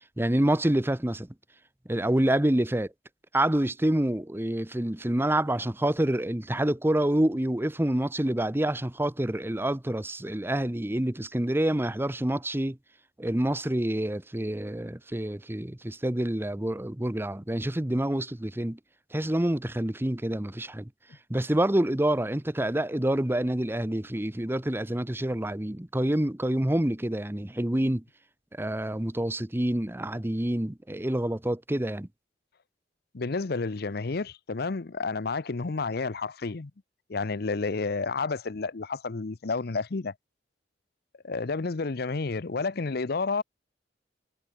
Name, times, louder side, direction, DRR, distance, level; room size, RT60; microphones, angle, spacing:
voice 1, 0.2-1.3 1.9-2.9 3.3-12.8 13.2-18.8 19.1-20.9 21.3-28.0 28.5-32.1, right 1 dB, 15° right, 0.8 m, -27 dB
voice 2, 33.1-36.7 37.1-40.1 41.2-43.4, left 4 dB, 60° left, 0.7 m, -30 dB
head